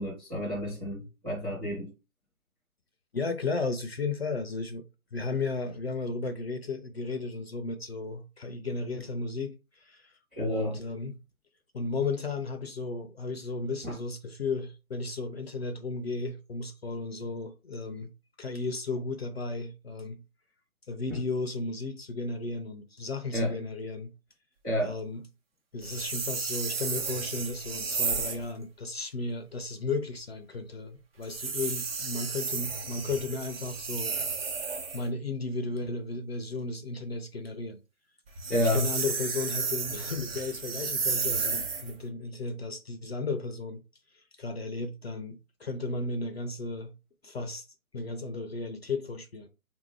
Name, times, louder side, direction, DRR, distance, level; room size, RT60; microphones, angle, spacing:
voice 1, 0.0-1.9 10.3-10.8 13.8-13.9 21.1-21.2 23.3-23.5 24.6-24.9 38.5-38.9, equal, 5° right, 0.6 m, -30 dB
voice 2, 3.1-4.9 5.1-10.1 10.4-11.2 11.7-18.1 18.4-20.2 20.9-24.1 24.8-25.2 25.7-34.2 34.6-37.8 38.5-43.8 44.4-46.9 47.2-47.7 47.9-49.5, left 3 dB, 50° left, 0.4 m, -34 dB
sound 1, 25.8-28.5 31.2-35.1 38.3-41.9, right 5 dB, 45° right, 0.8 m, -33 dB
3.4 x 2.6 x 3.1 m
figure-of-eight pair, 150°, 42 cm